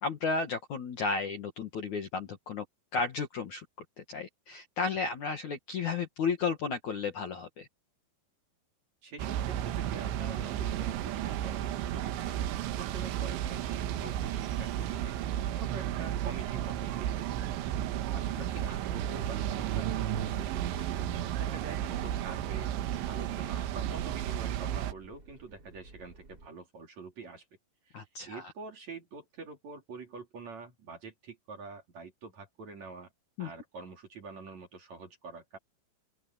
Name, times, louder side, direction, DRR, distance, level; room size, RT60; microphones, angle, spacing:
voice 1, 0.0-2.6 2.9-3.7 4.0-7.7 27.9-28.4 33.4-33.5, left 4 dB, 55° left, 2.4 m, -33 dB
voice 2, 9.0-17.8 18.1-21.1 21.3-22.7 23.1-27.4 27.9-33.1 33.4-35.6, right 4 dB, 40° right, 3.8 m, -46 dB
sound 1, 9.2-24.9, right 11 dB, 80° right, 3.5 m, -33 dB
sound 2, 19.5-26.5, right 2 dB, 20° right, 5.2 m, -54 dB
open air
omnidirectional pair, 5.4 m